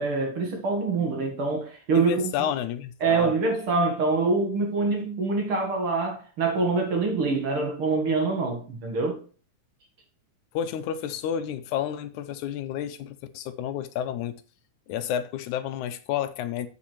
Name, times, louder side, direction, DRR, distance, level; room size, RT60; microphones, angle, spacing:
voice 1, 0.0-2.5 3.0-9.2, right 4 dB, 50° right, 2.4 m, -25 dB
voice 2, 1.9-3.3 10.5-14.3 14.9-16.7, left 10 dB, 85° left, 2.3 m, -30 dB
7.8 x 7.3 x 4.5 m
omnidirectional pair, 3.4 m